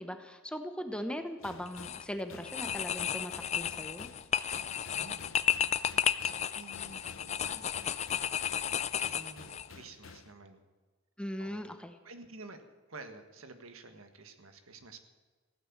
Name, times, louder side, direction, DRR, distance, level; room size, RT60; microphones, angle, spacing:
voice 1, 0.0-4.1 11.2-11.9, equal, 5° left, 8 dB, 0.9 m, -39 dB
sound 1, 1.4-10.3, left 5 dB, 70° left, 0.8 m, -52 dB
sound 2, 1.7-2.1 2.4-9.7, left 9 dB, 35° left, 0.4 m, -33 dB
voice 2, 5.0-8.0 9.0-10.6 11.4-11.6 12.0-12.6 12.9-15.0, right 3 dB, 90° right, 8 dB, 1.6 m, -51 dB
15.5 x 9.8 x 7.3 m, 1.4 s
head